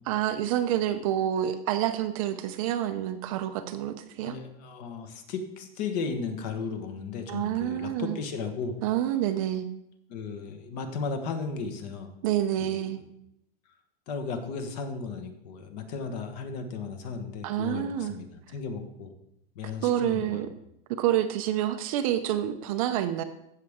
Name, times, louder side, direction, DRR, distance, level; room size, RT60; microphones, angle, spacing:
voice 1, 0.0-4.4 7.3-8.2 8.8-9.7 12.2-13.0 17.4-18.1 19.8-20.5 21.0-23.2, right 11 dB, 35° right, 9 dB, 0.5 m, -28 dB
voice 2, 4.2-8.8 10.1-12.1 12.6-13.0 14.1-18.3 18.5-19.1 19.5-20.4, left 5 dB, 45° left, 7 dB, 1.3 m, -35 dB
15.5 x 6.6 x 3.6 m, 0.79 s
supercardioid pair, 165°, 30 cm